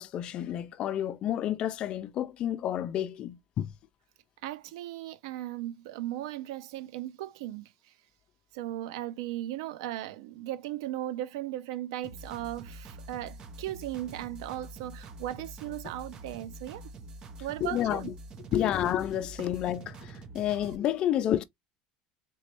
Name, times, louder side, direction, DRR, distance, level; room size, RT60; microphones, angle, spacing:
voice 1, 0.0-3.7 17.6-18.1 18.5-21.4, left 11 dB, 40° left, 0.4 m, -30 dB
voice 2, 4.4-7.9 8.5-16.9 17.4-18.1 18.5-18.7, right 14 dB, 85° right, 0.4 m, -37 dB
sound 1, 12.0-20.8, right 2 dB, 30° right, 0.7 m, -46 dB
4.0 x 3.1 x 2.9 m
cardioid pair, 150°, 3 cm